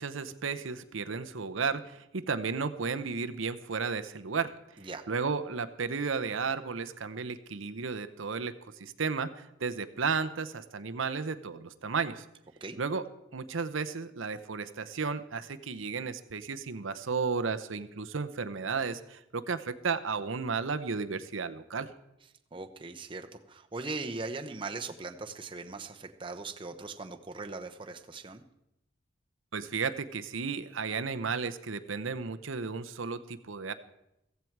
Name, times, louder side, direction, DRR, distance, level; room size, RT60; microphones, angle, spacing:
voice 1, 0.0-4.5 5.1-12.2 12.8-13.0 13.3-21.9 29.5-33.7, right 5 dB, 75° right, 11 dB, 0.8 m, -33 dB
voice 2, 22.5-28.4, right 3 dB, 25° right, 5 dB, 0.9 m, -40 dB
15.0 x 15.0 x 4.7 m, 0.85 s
head